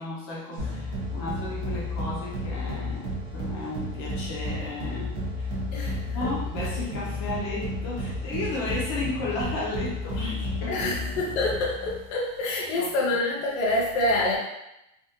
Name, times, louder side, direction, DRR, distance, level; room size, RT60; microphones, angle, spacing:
voice 1, 0.0-5.1 5.4-5.5 5.7-11.1 12.7-12.9, left 2 dB, 25° left, -5 dB, 0.3 m, -34 dB
sound 1, 0.6-12.1, left 1 dB, 45° right, 1.1 m, -32 dB
voice 2, 5.7-6.3 10.7-14.4, left 2 dB, 55° left, -4 dB, 0.7 m, -27 dB
3.4 x 2.1 x 2.7 m, 0.88 s
supercardioid pair, 175°, 39 cm